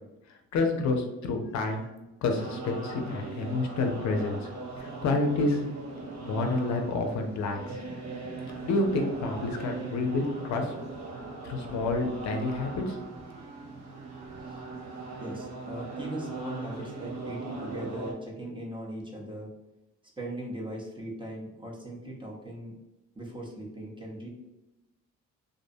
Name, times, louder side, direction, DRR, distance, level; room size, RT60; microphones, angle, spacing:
voice 1, 0.5-1.8 2.2-4.5 4.8-5.6 6.2-7.8 8.6-10.7 11.4-13.0, left 3 dB, 65° left, 4 dB, 0.5 m, -29 dB
sound 1, 2.4-18.1, right 3 dB, 60° right, 0.7 m, -39 dB
voice 2, 15.2-19.5 20.2-22.7 23.1-24.3, right 1 dB, 15° right, -2 dB, 0.7 m, -39 dB
2.5 x 2.1 x 2.6 m, 0.96 s
cardioid pair, 90°, 30 cm